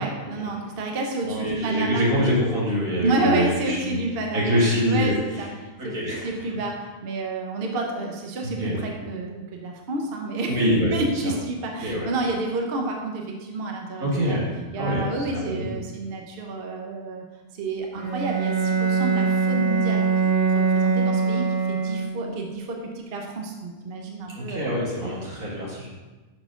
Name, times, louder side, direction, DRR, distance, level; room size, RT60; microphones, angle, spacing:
voice 1, 0.0-2.0 3.0-4.6 4.9-5.5 5.8-6.7 7.0-10.6 10.9-14.4 14.7-17.2 17.6-22.8 23.1-24.9, right 2 dB, 50° right, 1 dB, 0.9 m, -29 dB
voice 2, 1.2-4.0 4.3-5.1 5.8-6.3 8.4-8.8 10.5-11.3 11.8-12.1 14.0-14.5 14.8-15.7 24.5-25.9, equal, 85° right, -6 dB, 2.5 m, -25 dB
Bowed string instrument, 17.9-22.4, right 5 dB, 70° right, 1.8 m, -23 dB
5.8 x 4.7 x 5.6 m, 1.2 s
omnidirectional pair, 1.4 m